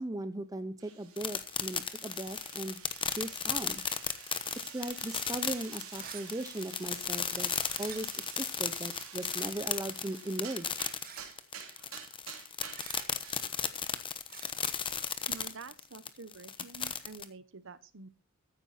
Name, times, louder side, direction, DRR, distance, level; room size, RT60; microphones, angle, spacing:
voice 1, 0.0-2.8 3.1-3.8 4.7-7.5 7.8-10.8, right 1 dB, 15° right, 12 dB, 0.6 m, -38 dB
sound 1, 0.8-13.9, right 8 dB, 75° right, 2.8 m, -49 dB
sound 2, 1.2-17.2, left 7 dB, 25° left, 1.1 m, -35 dB
sound 3, 5.9-6.3 7.7-8.0 9.2-9.5 11.0-11.3 12.7-13.0 14.3-14.5, right 8 dB, 45° right, 1.6 m, -48 dB
voice 2, 15.3-18.1, right 4 dB, 60° right, 15 dB, 1.1 m, -48 dB
14.5 x 9.3 x 4.2 m, 0.32 s
head